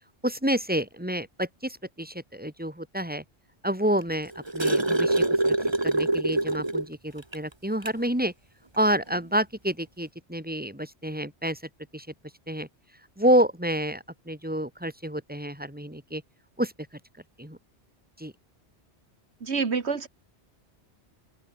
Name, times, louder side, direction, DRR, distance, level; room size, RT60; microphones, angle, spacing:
voice 1, 0.2-3.2 3.6-5.5 5.8-8.3 8.8-11.6 11.9-12.1 12.5-12.7 13.2-16.2 16.6-16.7 17.4-17.6 18.2-18.3, right 1 dB, 10° right, 4.4 m, -28 dB
sound 1, 4.0-6.9 7.3-7.4 7.8-8.0 9.1-9.2, right 2 dB, 25° right, 2.1 m, -25 dB
voice 2, 19.4-20.1, right 5 dB, 75° right, 1.9 m, -27 dB
open air
omnidirectional pair, 1.1 m